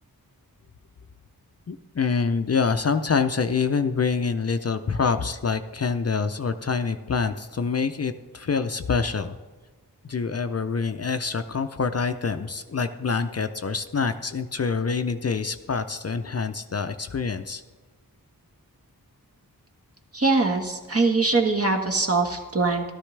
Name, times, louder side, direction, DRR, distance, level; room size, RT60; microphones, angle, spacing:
voice 1, 1.7-9.4 10.0-17.6, left 5 dB, 45° left, 9 dB, 0.5 m, -26 dB
voice 2, 20.1-22.9, right 3 dB, 40° right, 3 dB, 1.5 m, -22 dB
13.5 x 12.5 x 3.3 m, 1.3 s
wide cardioid pair, 65°, 37 cm